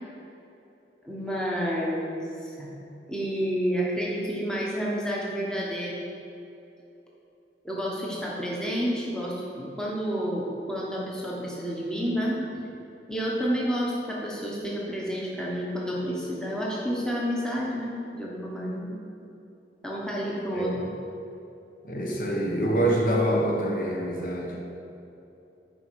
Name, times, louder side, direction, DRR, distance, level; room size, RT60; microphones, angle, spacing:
voice 1, 1.0-2.7 3.1-6.0 7.6-12.4 13.1-18.9 19.8-20.8, equal, 5° left, -5 dB, 1.0 m, -30 dB
voice 2, 20.5-20.8 21.8-24.6, right 1 dB, 50° left, -1 dB, 1.0 m, -26 dB
9.9 x 4.4 x 4.7 m, 2.9 s
head